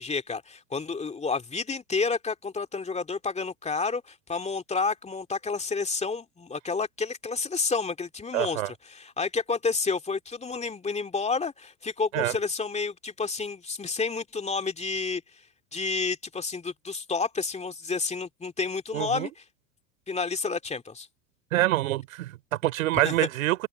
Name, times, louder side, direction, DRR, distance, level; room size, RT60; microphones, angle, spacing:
voice 1, 0.0-15.2 15.7-19.3 20.1-21.1 23.0-23.1, left 4 dB, 15° left, 2.5 m, -30 dB
voice 2, 8.3-8.7 12.1-12.3 18.9-19.3 21.5-23.7, right 16 dB, 70° right, 3.8 m, -26 dB
open air
hypercardioid pair, 95°, 42 cm